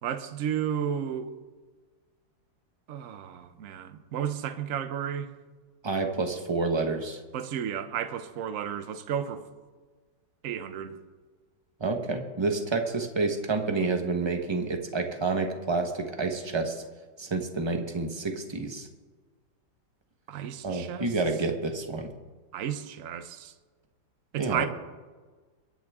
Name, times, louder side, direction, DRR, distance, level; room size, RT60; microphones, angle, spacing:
voice 1, 0.0-1.3 2.9-5.3 7.3-9.5 10.4-11.0 20.3-21.2 22.5-23.5 24.3-24.7, right 9 dB, 55° right, 1.1 m, -33 dB
voice 2, 5.8-7.2 11.8-16.8 17.2-18.9 20.6-22.1 24.4-24.7, right 3 dB, 20° right, 1.0 m, -29 dB
23.5 x 9.9 x 3.6 m
omnidirectional pair, 2.0 m